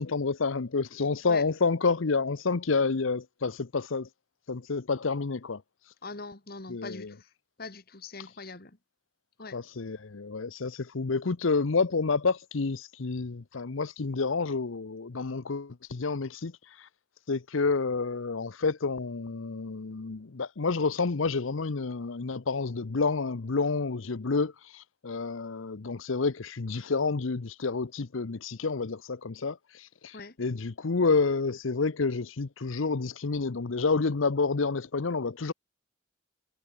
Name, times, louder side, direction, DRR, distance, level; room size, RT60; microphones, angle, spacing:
voice 1, 0.0-4.1 4.5-5.9 6.7-7.1 8.2-8.3 9.5-16.9 17.3-35.5, left 4 dB, 75° left, 0.8 m, -29 dB
voice 2, 6.0-7.3 7.6-8.8 9.4-9.6 30.1-30.4, left 3 dB, 45° left, 1.9 m, -42 dB
head